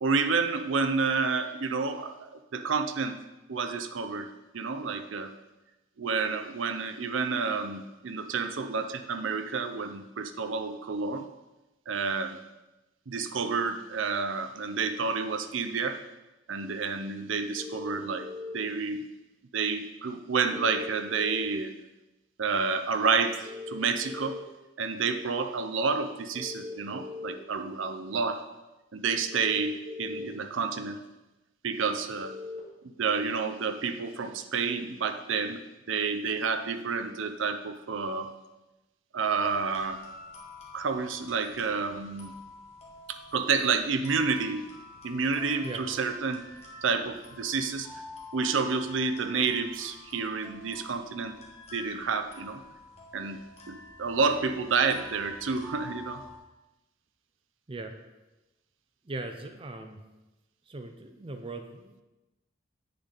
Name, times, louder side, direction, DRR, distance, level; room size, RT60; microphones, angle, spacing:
voice 1, 0.0-3.2 3.5-4.3 4.5-5.3 6.0-11.3 11.9-12.4 13.1-16.0 16.5-18.3 18.5-19.1 19.5-21.7 22.4-24.4 24.8-28.4 28.9-31.0 31.6-32.3 32.8-35.6 35.9-38.3 39.1-40.0 40.7-42.3 43.1-44.7 45.0-46.4 46.8-47.9 48.3-51.3 51.7-52.6 53.1-56.2, right 5 dB, 75° right, 8 dB, 0.6 m, -29 dB
sound 1, 17.5-18.5 20.5-21.5 23.4-24.4 26.3-27.3 29.3-30.2 32.2-32.6, left 3 dB, 45° right, 2.5 m, -40 dB
sound 2, 39.5-56.4, left 3 dB, 35° left, 1.6 m, -49 dB
voice 2, 59.0-60.0 60.7-62.0, right 2 dB, 25° right, 6 dB, 0.5 m, -39 dB
8.2 x 6.6 x 4.0 m, 1.0 s
head